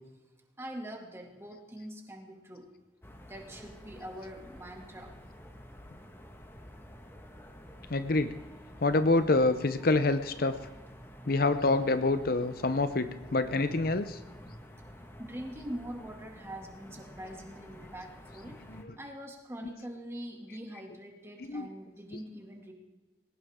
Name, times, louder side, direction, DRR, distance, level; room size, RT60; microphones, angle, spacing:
voice 1, 0.6-2.7 3.3-5.1 15.2-18.6 19.0-22.7, equal, 15° right, 1 dB, 2.4 m, -43 dB
sound 1, 3.0-18.8, equal, 15° left, 1.6 m, -49 dB
voice 2, 7.9-8.3 8.8-10.6 11.3-14.2 18.7-19.0 21.4-21.7 22.1-22.2, left 2 dB, 55° left, 10 dB, 0.7 m, -27 dB
21.0 x 18.0 x 3.7 m, 1.1 s
head